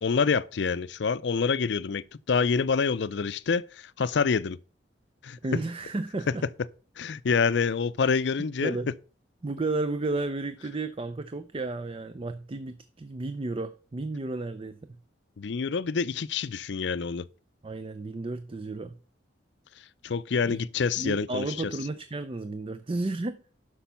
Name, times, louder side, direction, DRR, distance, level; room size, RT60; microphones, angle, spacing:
voice 1, 0.0-4.6 5.2-5.4 7.0-8.8 15.4-17.2 20.0-21.7, left 5 dB, 65° left, 0.5 m, -27 dB
voice 2, 5.4-6.4 8.6-8.9 9.4-14.9 17.6-19.0 20.5-20.6 21.0-23.4, right 2 dB, 30° right, 0.5 m, -32 dB
10.0 x 6.1 x 5.6 m
head